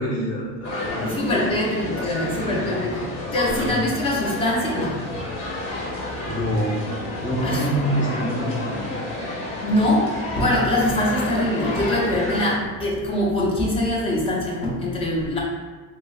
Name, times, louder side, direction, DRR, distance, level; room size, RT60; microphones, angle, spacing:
voice 1, 0.0-1.7 2.2-2.8 3.4-3.8 6.2-6.8 7.2-9.4, right 1 dB, 30° left, -6 dB, 1.0 m, -27 dB
sound 1, 0.6-12.5, left 2 dB, 65° left, 1.0 m, -30 dB
voice 2, 1.0-5.0 7.4-7.7 9.6-15.4, left 1 dB, 15° left, -3 dB, 0.3 m, -23 dB
3.6 x 2.0 x 2.4 m, 1.3 s
cardioid pair, 130°, 46 cm